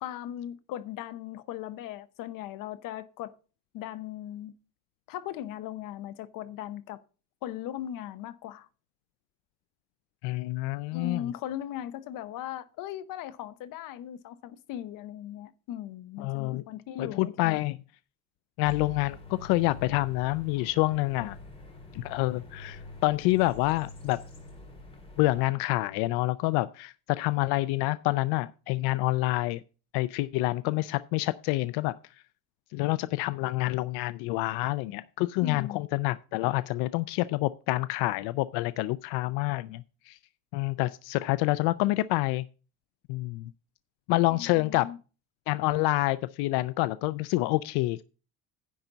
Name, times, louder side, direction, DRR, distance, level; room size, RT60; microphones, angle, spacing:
voice 1, 0.0-3.3 3.7-4.5 5.1-7.0 7.4-8.7 10.9-17.6 35.4-35.8 44.3-45.0, left 11 dB, 60° left, 0.9 m, -38 dB
voice 2, 10.2-11.2 16.2-16.6 17.0-17.8 18.6-21.4 21.9-24.2 25.2-29.6 29.9-31.9 32.7-40.2 40.5-42.4 43.1-43.5 44.1-44.9 45.5-48.0, left 19 dB, 85° left, 0.5 m, -27 dB
sound 1, 18.6-25.5, left 2 dB, 15° left, 1.9 m, -46 dB
10.0 x 3.9 x 7.2 m
cardioid pair, 160°, 37 cm